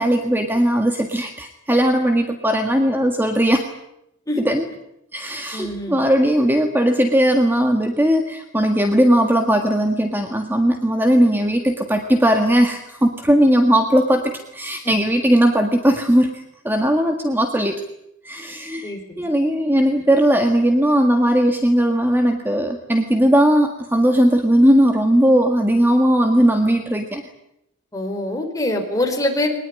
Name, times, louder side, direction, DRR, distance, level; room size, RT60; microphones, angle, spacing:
voice 1, 0.0-3.7 4.4-4.7 5.1-17.8 18.2-27.2, equal, 10° right, 5 dB, 1.8 m, -18 dB
voice 2, 5.5-6.0 14.8-14.9 18.8-19.2 27.9-29.5, left 1 dB, 15° left, 3 dB, 4.8 m, -24 dB
22.0 x 20.5 x 9.8 m, 0.81 s
head